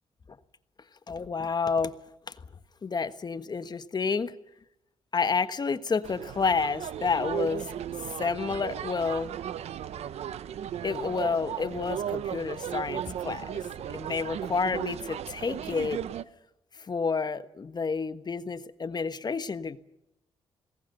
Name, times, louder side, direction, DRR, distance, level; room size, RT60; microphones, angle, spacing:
voice 1, 1.1-2.0 2.3-2.4 2.8-4.3 5.1-7.7 8.2-9.4 10.8-13.5 13.9-16.0 16.7-19.8, left 5 dB, 40° left, 12 dB, 1.4 m, -29 dB
sound 1, 6.0-16.2, right 10 dB, 75° right, 1.0 m, -36 dB
28.5 x 19.5 x 6.8 m, 0.89 s
cardioid pair, 70°, 11 cm